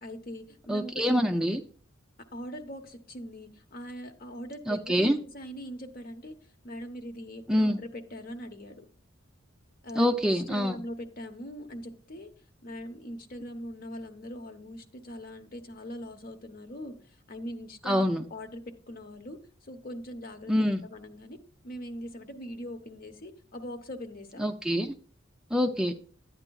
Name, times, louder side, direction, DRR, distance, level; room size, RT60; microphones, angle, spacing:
voice 1, 0.0-1.3 2.3-6.4 6.6-8.8 9.8-12.3 12.6-17.0 17.3-21.4 21.6-24.5, equal, 45° left, 7 dB, 0.8 m, -41 dB
voice 2, 0.7-1.6 4.7-5.2 7.5-7.8 10.0-10.8 17.9-18.2 20.5-20.8 24.4-24.9 25.5-25.9, equal, 5° right, 3 dB, 0.4 m, -25 dB
11.0 x 8.8 x 2.3 m, 0.43 s
head